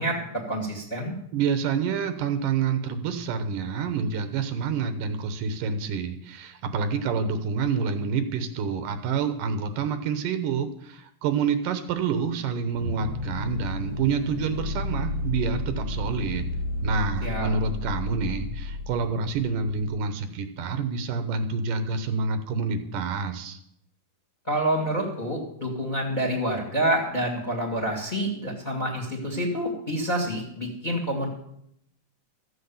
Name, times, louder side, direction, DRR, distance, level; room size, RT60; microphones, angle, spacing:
voice 1, 0.0-1.1 17.2-17.5 24.5-31.3, right 1 dB, 15° left, 1 dB, 1.7 m, -27 dB
voice 2, 1.3-16.5 16.8-23.6, right 5 dB, 75° right, 9 dB, 2.5 m, -28 dB
sound 1, 12.7-20.0, left 2 dB, 60° right, 0.7 m, -32 dB
14.0 x 7.9 x 7.1 m, 0.74 s
omnidirectional pair, 3.9 m